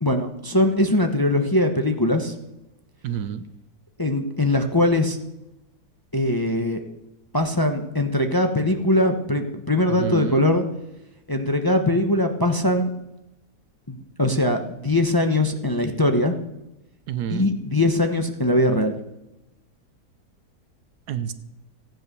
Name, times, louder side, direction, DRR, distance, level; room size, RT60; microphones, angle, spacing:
voice 1, 0.0-2.3 4.0-5.2 6.1-6.8 7.3-10.7 11.3-12.9 13.9-16.3 17.3-19.0, left 1 dB, 15° left, 5 dB, 0.9 m, -21 dB
voice 2, 3.0-3.4 10.0-10.4 17.1-17.5 21.1-21.3, right 9 dB, 75° right, 12 dB, 1.4 m, -28 dB
15.5 x 9.1 x 6.8 m, 0.91 s
omnidirectional pair, 1.7 m